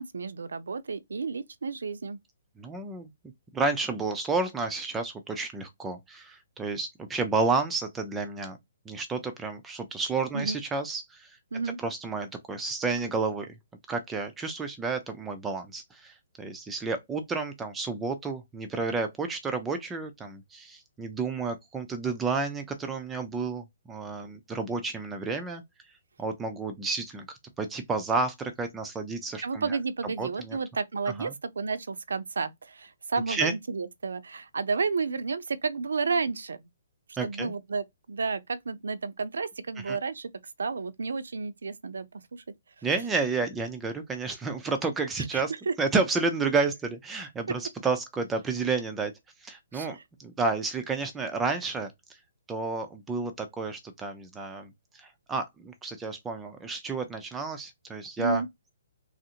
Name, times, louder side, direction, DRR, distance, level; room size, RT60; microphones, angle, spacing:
voice 1, 0.0-2.2 10.3-10.6 11.5-11.8 29.4-36.6 37.2-40.3 40.6-42.1 42.3-42.4 45.3-45.7 49.7-50.0 58.2-58.5, right 4 dB, 90° right, 0.5 m, -31 dB
voice 2, 2.6-3.1 3.5-8.6 8.9-11.4 11.8-13.5 13.9-25.6 26.2-29.8 30.2-30.6 31.2-31.3 33.3-33.5 37.2-37.5 39.8-40.0 42.8-45.5 45.8-49.1 49.4-51.9 52.5-58.4, right 4 dB, 10° right, 0.3 m, -31 dB
3.1 x 2.5 x 2.8 m
hypercardioid pair, 170°, 0 cm